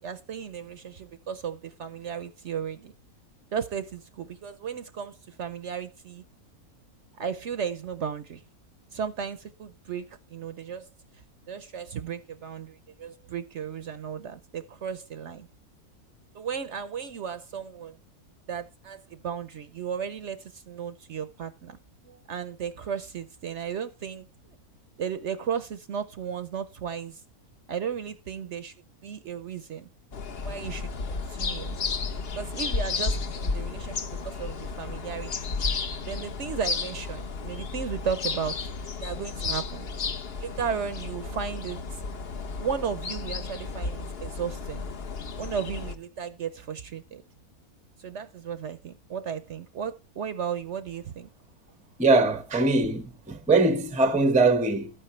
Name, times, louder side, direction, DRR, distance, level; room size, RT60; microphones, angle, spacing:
voice 1, 0.0-2.9 3.5-6.2 7.2-8.4 8.9-10.9 11.1-15.5 16.3-18.0 18.5-21.8 22.1-24.3 25.0-27.2 27.7-28.7 29.0-29.9 30.4-31.8 32.4-35.6 36.1-38.6 39.0-39.9 40.4-42.0 42.6-44.8 45.4-47.2 48.0-51.3, right 7 dB, 60° right, 0.9 m, -35 dB
sound 1, 30.1-45.9, left 4 dB, 45° left, 1.0 m, -33 dB
voice 2, 52.0-54.9, right 3 dB, 5° right, 0.6 m, -22 dB
12.5 x 9.0 x 3.2 m
omnidirectional pair, 1.6 m